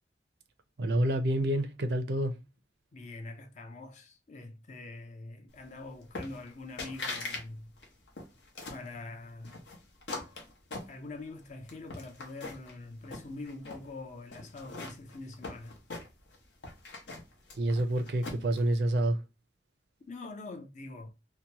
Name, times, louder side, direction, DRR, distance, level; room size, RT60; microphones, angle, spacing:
voice 1, 0.8-2.4 17.6-19.2, right 1 dB, 65° right, 0.5 m, -28 dB
voice 2, 2.9-7.7 8.7-9.6 10.9-15.8 20.1-21.1, left 2 dB, 40° left, 0.5 m, -44 dB
sound 1, 6.2-6.5 6.8-7.4 7.8-8.9 9.4-11.3 11.7-12.7 13.1-13.8 14.3-16.4 16.6-18.6, left 3 dB, 80° left, 0.9 m, -41 dB
2.9 x 2.2 x 2.7 m
head